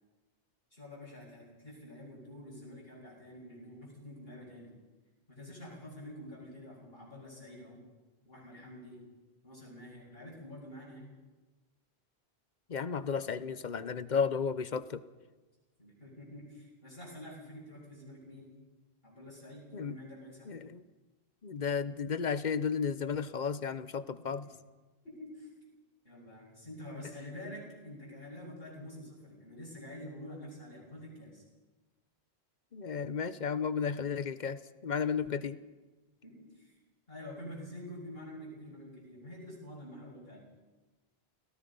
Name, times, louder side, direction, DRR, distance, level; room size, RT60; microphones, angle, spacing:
voice 1, 0.7-4.7 5.3-7.8 8.2-9.0 9.4-11.1 15.8-18.5 19.0-20.6 24.2-24.5 25.0-25.5 26.0-31.4 36.2-36.8 37.1-40.5, left 1 dB, 65° left, -6 dB, 6.3 m, -47 dB
voice 2, 12.7-15.0 19.7-20.0 20.5-20.8 21.4-24.5 32.7-35.6, left 6 dB, 50° left, 14 dB, 0.9 m, -33 dB
29.0 x 17.5 x 5.4 m, 1.2 s
omnidirectional pair, 1.1 m